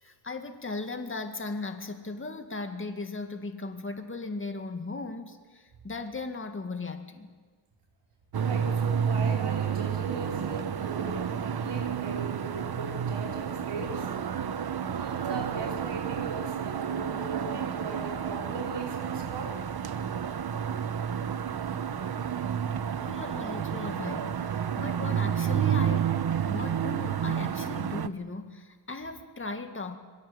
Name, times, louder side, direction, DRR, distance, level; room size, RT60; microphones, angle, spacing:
voice 1, 0.0-7.3 23.0-26.2 26.5-30.0, left 3 dB, 25° left, 6 dB, 2.0 m, -37 dB
sound 1, 8.3-28.1, right 8 dB, 50° right, 1.0 m, -30 dB
voice 2, 8.4-14.1 14.8-19.6, right 3 dB, 85° right, 0 dB, 4.6 m, -38 dB
26.5 x 22.0 x 8.0 m, 1.4 s
wide cardioid pair, 130°, 50 cm